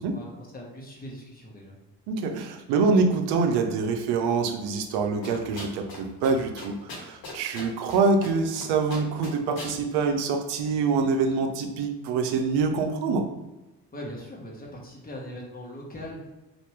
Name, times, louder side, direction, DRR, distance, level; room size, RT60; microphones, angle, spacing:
voice 1, 0.1-1.8 13.9-16.4, equal, 20° left, -2 dB, 1.1 m, -40 dB
voice 2, 2.1-13.3, right 4 dB, 55° right, 5 dB, 0.6 m, -25 dB
sound 1, 5.2-6.0 6.2-6.3 6.6-8.0 8.2-8.6 8.9-9.7, left 2 dB, 45° left, 1.2 m, -39 dB
2.8 x 2.5 x 3.2 m, 1.0 s
figure-of-eight pair, 50°, 49 cm